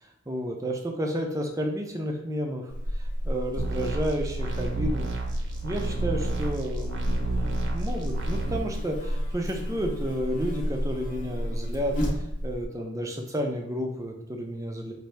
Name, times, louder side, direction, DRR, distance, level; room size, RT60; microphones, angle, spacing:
voice 1, 0.0-5.2 5.6-14.9, equal, 15° right, 2 dB, 0.5 m, -32 dB
Buzz, 2.7-12.7, equal, 35° left, 0.9 m, -31 dB
sound 1, 3.6-8.6, right 4 dB, 55° right, 0.7 m, -33 dB
5.4 x 2.7 x 3.3 m, 0.84 s
head